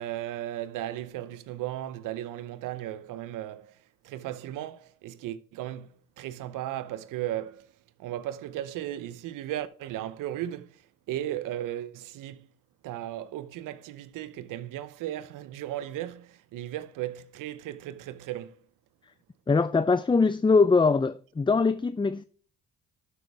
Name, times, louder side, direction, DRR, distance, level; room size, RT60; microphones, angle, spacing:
voice 1, 0.0-3.8 4.0-7.7 8.0-12.5 12.8-18.5, right 13 dB, 85° right, 0.9 m, -36 dB
voice 2, 19.5-22.2, left 4 dB, 15° left, 0.5 m, -22 dB
12.5 x 6.4 x 3.4 m
supercardioid pair, 65°, 31 cm